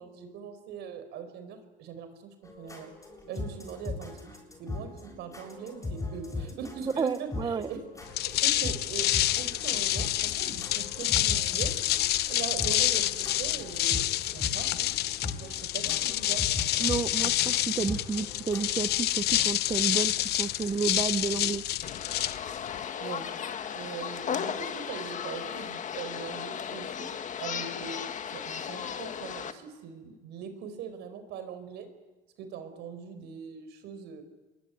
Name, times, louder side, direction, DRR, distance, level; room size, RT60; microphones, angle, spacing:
voice 1, 0.0-2.9 3.3-7.8 8.2-9.1 9.4-11.7 12.3-14.9 15.3-16.4 23.0-23.3 23.7-27.0 27.4-28.0 28.3-31.9 32.4-34.2, right 7 dB, 85° right, 9 dB, 4.7 m, -41 dB
sound 1, 2.4-19.0, left 2 dB, 20° left, 7.7 m, -40 dB
voice 2, 7.0-7.7 16.8-20.1 20.4-21.6, right 5 dB, 25° right, 13 dB, 0.8 m, -31 dB
sound 2, 8.0-22.8, left 14 dB, 75° left, 0.9 m, -28 dB
sound 3, 21.8-29.5, left 8 dB, 45° left, 1.7 m, -36 dB
28.5 x 22.0 x 9.4 m, 1.2 s
cardioid pair, 110°, 17 cm